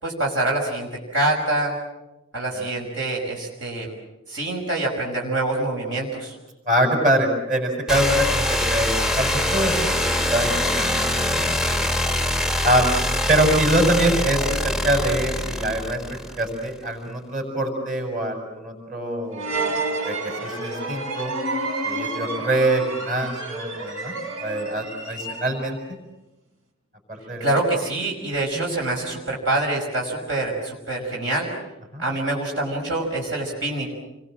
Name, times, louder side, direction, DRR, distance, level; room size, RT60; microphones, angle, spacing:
voice 1, 0.0-1.7 2.3-3.9 4.3-6.4 27.4-31.5 32.0-33.9, right 2 dB, 65° right, -1 dB, 5.6 m, -25 dB
voice 2, 6.7-11.9 12.6-13.0 13.3-19.8 20.1-20.2 20.4-21.3 21.8-24.1 24.4-25.8 27.1-27.4 31.9-32.0, right 1 dB, 40° right, 3 dB, 6.6 m, -24 dB
sound 1, 7.9-16.6, left 1 dB, ahead, 0.9 m, -24 dB
sound 2, 19.3-25.8, right 2 dB, 80° right, 4.5 m, -30 dB
29.5 x 23.0 x 7.6 m, 0.98 s
head